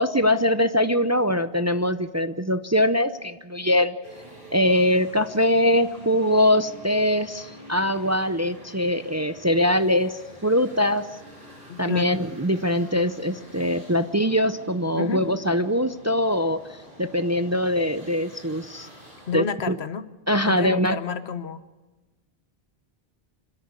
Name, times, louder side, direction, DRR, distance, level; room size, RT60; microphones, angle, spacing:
voice 1, 0.0-3.9 4.5-11.1 11.8-16.6 17.0-18.9 19.3-19.8 20.3-21.0, left 1 dB, 20° right, 10 dB, 0.5 m, -22 dB
sound 1, 4.0-19.4, equal, 70° right, 8.1 m, -47 dB
voice 2, 11.7-12.1 14.9-15.3 19.3-20.1 20.4-21.6, left 6 dB, 85° left, 12 dB, 1.2 m, -30 dB
26.0 x 13.0 x 8.2 m, 1.2 s
omnidirectional pair, 1.0 m